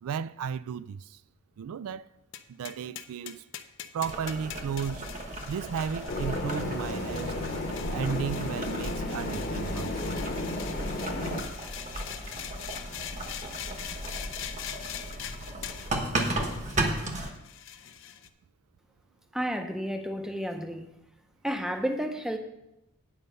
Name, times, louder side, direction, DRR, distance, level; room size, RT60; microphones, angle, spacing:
voice 1, 0.0-1.2 1.6-2.1 2.5-3.4 3.9-5.1 5.5-7.4 7.9-10.2, right 7 dB, 80° right, 0.3 m, -34 dB
sound 1, 2.3-18.3, left 10 dB, 60° left, 0.5 m, -43 dB
Boiling, 4.0-17.3, right 1 dB, 30° right, 1.1 m, -35 dB
sound 2, 6.1-11.4, left 2 dB, 40° left, 1.2 m, -33 dB
voice 2, 19.3-20.9 21.4-22.4, equal, ahead, 0.7 m, -31 dB
9.3 x 5.3 x 6.7 m
head